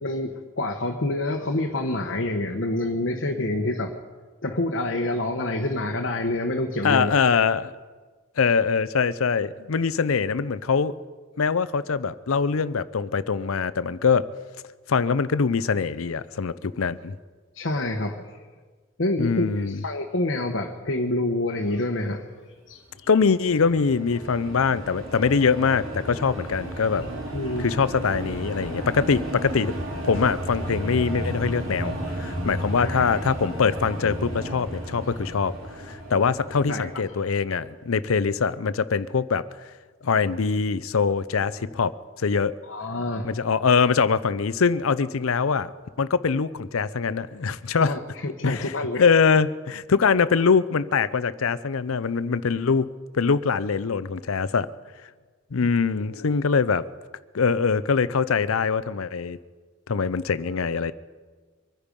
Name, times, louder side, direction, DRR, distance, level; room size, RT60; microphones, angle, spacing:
voice 1, 0.0-3.9 4.4-7.1 17.5-18.4 19.0-22.3 22.7-23.1 27.3-27.7 32.8-33.1 36.5-36.9 42.7-43.3 47.8-49.1 56.0-56.4, left 1 dB, 60° left, 2 dB, 1.1 m, -27 dB
voice 2, 6.8-7.7 8.4-10.9 11.4-14.3 14.9-17.1 19.2-19.8 23.1-27.0 27.6-29.7 30.0-35.5 35.9-39.4 40.0-41.9 42.2-42.6 43.2-45.7 46.0-47.9 48.4-48.6 49.0-52.9 53.1-54.7 55.5-56.8 57.3-59.4 59.9-60.9, left 5 dB, 85° left, 16 dB, 0.6 m, -23 dB
sound 1, 23.1-37.6, right 1 dB, 85° right, 2.8 m, -34 dB
24.5 x 9.8 x 5.3 m, 1.4 s
head